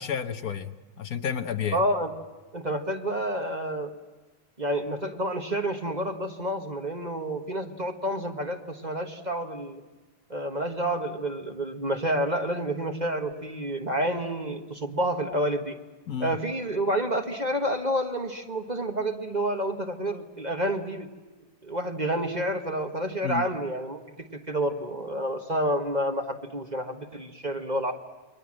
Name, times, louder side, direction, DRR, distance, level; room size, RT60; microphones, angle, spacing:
voice 1, 0.0-1.8 16.1-16.4 23.2-23.5, left 8 dB, 65° left, 8 dB, 1.4 m, -31 dB
voice 2, 1.7-2.1 2.5-3.9 4.6-9.8 10.3-15.8 16.2-21.1 21.6-24.0 24.5-27.9, right 1 dB, 25° right, 5 dB, 1.5 m, -29 dB
29.5 x 23.5 x 7.6 m, 1.2 s
omnidirectional pair, 1.7 m